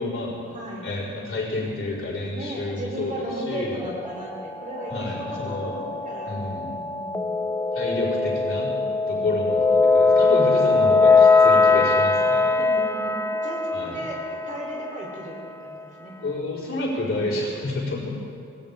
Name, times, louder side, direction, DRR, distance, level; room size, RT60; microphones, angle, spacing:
voice 1, 0.0-0.4 0.8-3.8 4.9-5.8 6.3-6.8 7.7-8.7 9.1-12.5 13.7-13.9 16.2-18.1, left 2 dB, 45° left, -7 dB, 4.7 m, -29 dB
voice 2, 0.5-0.8 2.3-6.3 6.9-7.5 9.1-9.3 12.5-16.2 17.0-17.4 17.9-18.1, right 1 dB, 25° right, -3 dB, 3.5 m, -36 dB
sound 1, 3.8-15.1, left 3 dB, 10° left, 0.5 m, -21 dB
20.5 x 16.5 x 3.6 m, 2.5 s
wide cardioid pair, 130°, 30 cm